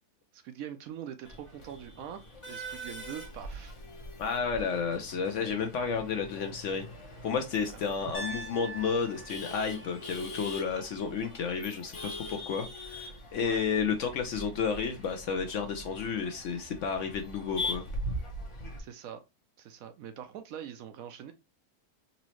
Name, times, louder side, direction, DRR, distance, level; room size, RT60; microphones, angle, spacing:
voice 1, 0.3-3.7 7.7-7.8 13.4-13.6 18.8-19.2 19.6-21.3, right 9 dB, 70° right, 0.9 m, -43 dB
Male speech man speaking / Laughter / Chatter, 1.2-18.8, left 1 dB, 25° left, 0.7 m, -42 dB
voice 2, 4.2-6.9 7.2-17.8, left 6 dB, 65° left, 0.8 m, -32 dB
Piano, 8.1-12.2, right 1 dB, 40° left, 1.4 m, -45 dB
4.1 x 2.7 x 2.9 m
omnidirectional pair, 1.6 m